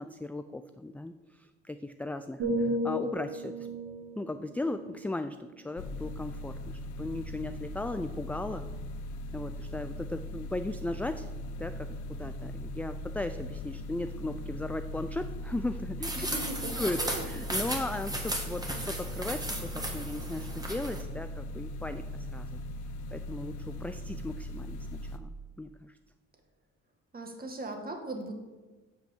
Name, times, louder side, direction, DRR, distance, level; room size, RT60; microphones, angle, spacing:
voice 1, 0.0-3.7 4.2-8.7 9.3-11.3 11.6-16.1 16.8-17.0 17.3-22.6 23.1-25.9, left 2 dB, 5° left, 9 dB, 0.3 m, -37 dB
sound 1, 2.4-6.3 6.8-7.1, equal, 70° right, 3.6 m, -35 dB
sound 2, 5.8-25.2, left 1 dB, 80° left, 0.8 m, -39 dB
sound 3, 16.0-21.0, right 1 dB, 15° right, 1.8 m, -36 dB
voice 2, 16.2-16.7 17.0-17.3 27.1-28.3, right 2 dB, 30° right, 3 dB, 1.9 m, -38 dB
7.9 x 5.9 x 7.2 m, 1.2 s
cardioid pair, 90°, 30 cm